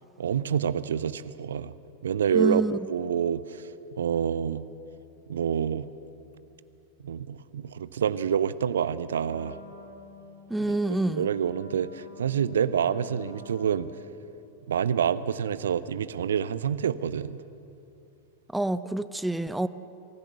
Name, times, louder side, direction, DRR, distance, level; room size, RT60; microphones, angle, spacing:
voice 1, 0.2-1.7 2.0-3.7 4.0-4.6 5.3-5.9 7.0-9.6 10.7-10.8 11.0-13.9 14.7-17.4, right 8 dB, 65° right, 16 dB, 0.6 m, -27 dB
voice 2, 2.3-2.7 10.5-11.3 18.5-19.7, right 1 dB, 5° right, 15 dB, 0.5 m, -27 dB
Wind instrument woodwind instrument, 9.2-14.3, left 2 dB, 80° left, 2.2 m, -49 dB
24.0 x 15.5 x 8.1 m, 2.7 s
figure-of-eight pair, 90°, 0 cm